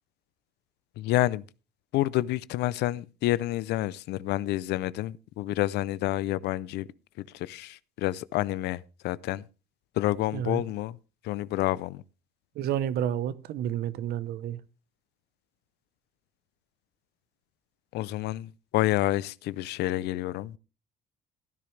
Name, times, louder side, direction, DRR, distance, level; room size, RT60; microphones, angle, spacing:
voice 1, 1.0-1.4 1.9-6.9 7.2-9.4 10.0-11.0 11.2-12.0 17.9-20.6, left 15 dB, 80° left, 0.5 m, -29 dB
voice 2, 12.6-14.6, right 10 dB, 70° right, 0.8 m, -30 dB
16.0 x 10.0 x 3.3 m
cardioid pair, 110°, 17 cm